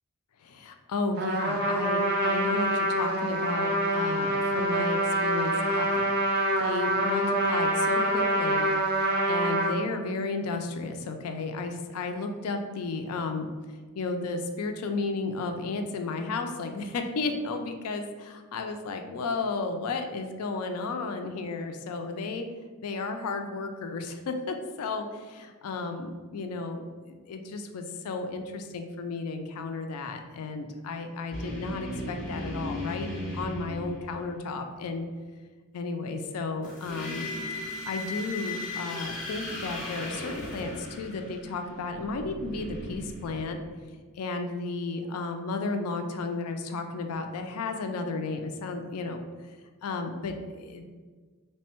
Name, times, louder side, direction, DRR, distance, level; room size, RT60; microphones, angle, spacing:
voice 1, 0.4-6.1 6.6-8.6 8.9-22.5 22.8-26.8 27.1-35.1 35.7-37.3 37.9-43.6 44.2-49.2 49.4-49.6 49.8-50.8, left 3 dB, 80° left, 6 dB, 0.4 m, -33 dB
Trumpet, 1.2-9.7, right 1 dB, 45° right, 0.6 m, -26 dB
sound 1, 31.3-34.6 36.6-43.9, left 1 dB, 40° left, 0.9 m, -37 dB
3.3 x 2.2 x 4.3 m, 1.4 s
head